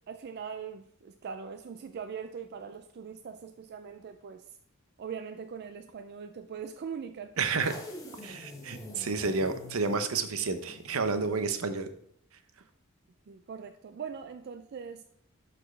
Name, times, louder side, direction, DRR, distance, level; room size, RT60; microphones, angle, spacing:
voice 1, 0.1-4.4 5.0-7.4 13.3-15.0, right 6 dB, 50° right, 0.4 m, -41 dB
voice 2, 7.4-7.7 8.2-11.9, right 4 dB, 75° right, 0.7 m, -30 dB
sound 1, 7.6-11.9, left 1 dB, 15° left, 1.0 m, -47 dB
11.5 x 4.3 x 3.2 m
head